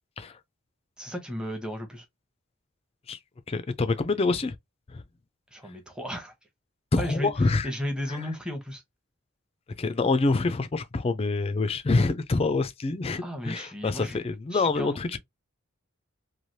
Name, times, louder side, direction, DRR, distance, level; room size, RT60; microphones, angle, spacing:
voice 1, 1.0-2.0 5.5-6.3 7.0-8.8 13.2-14.2 14.5-15.2, equal, 5° right, 0.8 m, -35 dB
voice 2, 3.5-4.5 4.9-5.0 6.9-7.7 9.8-15.2, left 3 dB, 30° left, 0.4 m, -26 dB
3.2 x 2.3 x 2.6 m
head